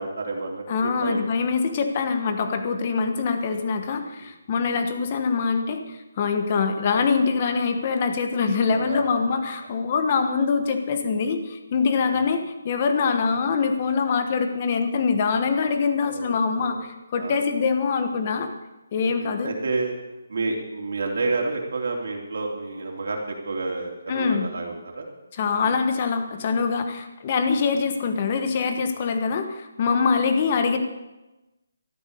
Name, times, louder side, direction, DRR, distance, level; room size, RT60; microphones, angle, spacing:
voice 1, 0.0-1.2 1.7-1.8 4.2-4.3 4.7-4.8 8.7-9.2 12.1-12.3 16.0-16.8 17.2-17.4 19.1-19.9 20.3-25.1 25.6-25.8 27.5-27.6 30.0-30.1, right 3 dB, 50° right, 1 dB, 3.5 m, -30 dB
voice 2, 0.7-12.4 12.6-18.5 18.9-19.5 24.1-24.5 25.3-30.8, left 5 dB, 25° left, 7 dB, 1.3 m, -24 dB
13.5 x 12.0 x 6.7 m, 1.0 s
hypercardioid pair, 175°, 0 cm